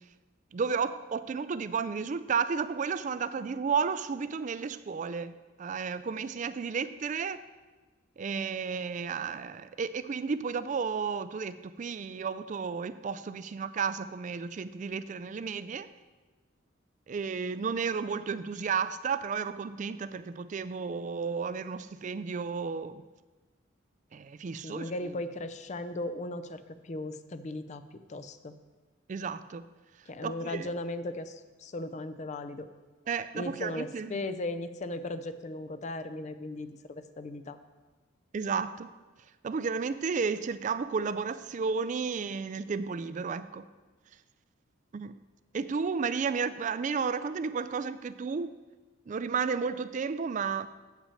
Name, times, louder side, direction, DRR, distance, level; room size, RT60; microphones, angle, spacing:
voice 1, 0.5-5.3 5.6-7.4 8.2-15.9 17.1-23.0 24.1-24.9 29.1-29.6 30.2-30.7 33.1-34.2 38.3-38.9 39.4-43.7 44.9-45.1 45.5-48.5 49.1-50.7, right 5 dB, 40° right, 13 dB, 0.3 m, -32 dB
voice 2, 24.6-27.8 28.1-28.6 30.1-32.7 33.3-37.6, left 2 dB, 35° left, 11 dB, 0.4 m, -37 dB
8.5 x 5.8 x 5.6 m, 1.2 s
head